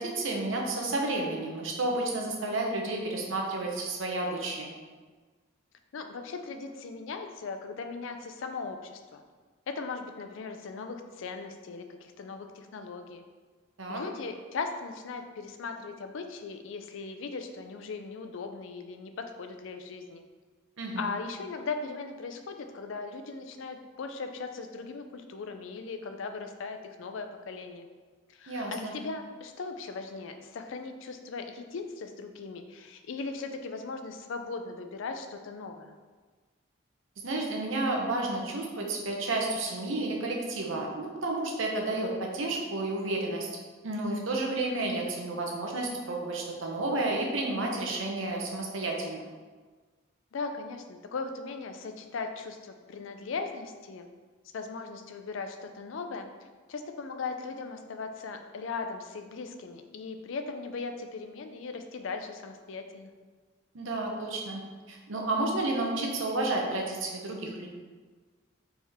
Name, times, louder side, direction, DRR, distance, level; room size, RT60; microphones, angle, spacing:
voice 1, 0.0-4.7 13.8-14.0 20.8-21.1 28.5-29.0 37.2-43.5 43.8-49.2 63.7-64.6 64.9-67.7, right 2 dB, 75° right, 0 dB, 0.8 m, -31 dB
voice 2, 5.9-9.2 9.7-13.2 13.9-20.2 21.0-27.9 28.3-35.9 50.3-54.1 54.5-56.3 56.7-63.1, left 4 dB, 70° left, 6 dB, 0.4 m, -38 dB
4.3 x 3.4 x 3.5 m, 1.4 s
head